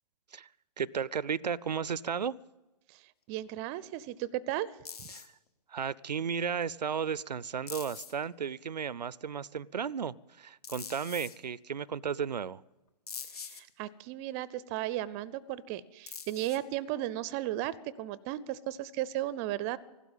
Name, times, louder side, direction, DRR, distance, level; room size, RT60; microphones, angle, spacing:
voice 1, 0.8-2.4 5.1-5.3 5.7-12.6, right 7 dB, 85° right, 0.4 m, -34 dB
voice 2, 3.3-4.7 5.0-5.1 13.4-19.8, right 14 dB, 25° right, 0.5 m, -35 dB
sound 1, 4.8-5.3 6.6-6.7 7.7-8.2 10.6-11.4 13.1-13.6 16.1-16.7, left 6 dB, 65° left, 1.6 m, -43 dB
16.0 x 12.5 x 7.3 m
figure-of-eight pair, 130°, 21 cm